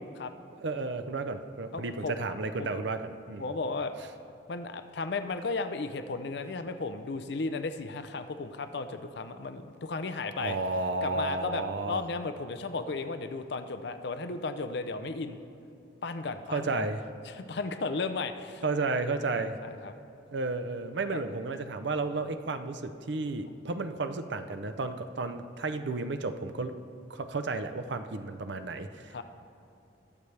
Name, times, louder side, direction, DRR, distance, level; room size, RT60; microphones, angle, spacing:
voice 1, 0.6-3.5 10.4-12.0 16.5-17.0 18.6-19.6 20.3-26.7 27.1-29.2, right 3 dB, 70° right, 9 dB, 0.6 m, -32 dB
voice 2, 1.7-2.1 2.6-2.7 3.4-3.9 4.5-10.6 11.0-15.4 16.0-16.9 17.2-18.6 19.3-19.9 21.1-21.2 29.1-29.2, left 3 dB, 60° left, 9 dB, 0.5 m, -35 dB
21.0 x 7.0 x 3.3 m, 2.8 s
head